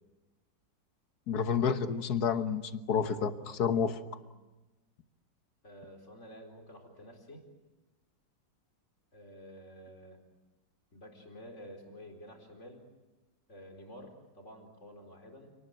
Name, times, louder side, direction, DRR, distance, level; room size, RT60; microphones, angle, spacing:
voice 1, 1.3-4.0, left 6 dB, 55° left, 10 dB, 1.7 m, -30 dB
voice 2, 5.6-7.4 9.1-10.2 10.9-12.8 13.5-15.5, equal, 35° left, 4 dB, 4.7 m, -50 dB
29.5 x 19.5 x 9.2 m, 1.1 s
omnidirectional pair, 2.0 m